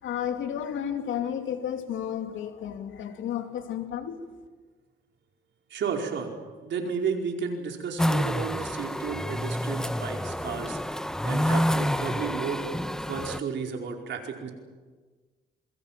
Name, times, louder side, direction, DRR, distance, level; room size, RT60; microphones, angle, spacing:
voice 1, 0.0-4.2, left 9 dB, 75° left, 2.8 m, -32 dB
voice 2, 5.7-6.3 6.6-12.6 13.0-14.5, right 6 dB, 65° right, 4.8 m, -33 dB
sound 1, 8.0-13.4, equal, 5° left, 0.9 m, -28 dB
27.5 x 23.0 x 7.6 m
cardioid pair, 90°, 20 cm